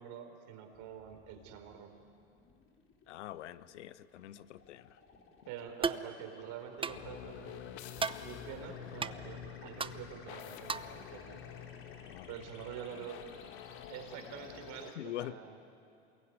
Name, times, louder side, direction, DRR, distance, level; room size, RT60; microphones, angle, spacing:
voice 1, 0.0-1.9 5.5-7.6 8.2-11.4 12.3-13.2 13.9-15.6, right 8 dB, 55° right, 5 dB, 4.5 m, -46 dB
sound 1, 0.7-14.9, left 5 dB, 35° left, 3.9 m, -59 dB
voice 2, 3.1-5.0 12.0-12.3 15.0-15.4, left 14 dB, 80° left, 16 dB, 0.9 m, -44 dB
sound 2, 5.8-6.1 6.8-7.0 8.0-8.2 9.0-9.1 9.8-9.9 10.7-10.9, right 5 dB, 15° right, 0.8 m, -34 dB
sound 3, 6.9-14.9, left 10 dB, 65° left, 2.0 m, -48 dB
27.5 x 22.0 x 9.6 m, 2.5 s
hypercardioid pair, 80°, 35 cm